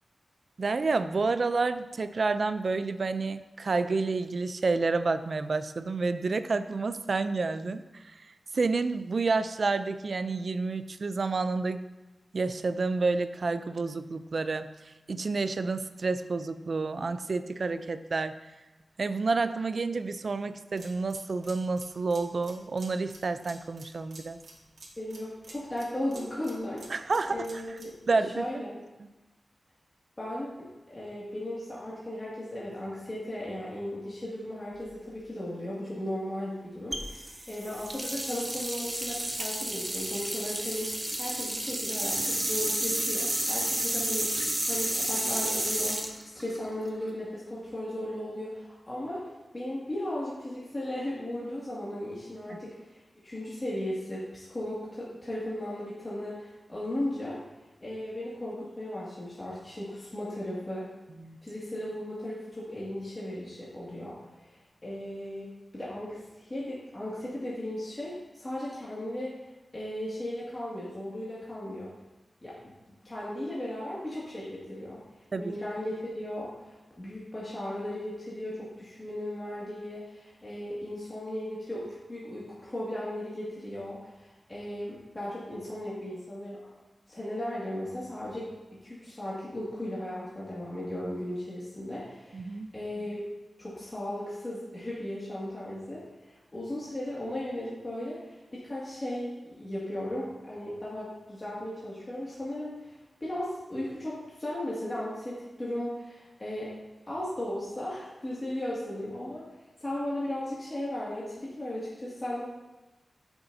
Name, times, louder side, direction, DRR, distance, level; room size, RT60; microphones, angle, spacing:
voice 1, 0.6-8.0 8.5-11.8 12.3-18.4 19.0-24.4 26.9-27.4 28.1-28.5 29.0-29.1 52.5-52.6 61.2-61.4 75.3-75.5 92.3-92.7, right 3 dB, 55° right, 11 dB, 0.5 m, -29 dB
sound 1, 20.7-28.0, right 2 dB, 75° right, 1.9 m, -51 dB
voice 2, 25.0-27.0 27.3-27.9 28.3-28.7 30.2-44.3 44.6-57.4 57.8-60.9 61.4-69.4 69.7-71.9 72.4-72.6 73.0-75.0 75.4-86.6 87.1-93.3 93.6-106.7 107.1-109.5 109.8-112.4, left 1 dB, 25° left, -8 dB, 2.2 m, -36 dB
sound 2, 36.9-47.1, right 1 dB, 20° right, 1.1 m, -31 dB
13.5 x 7.1 x 2.7 m, 1.1 s
wide cardioid pair, 105°, 0 cm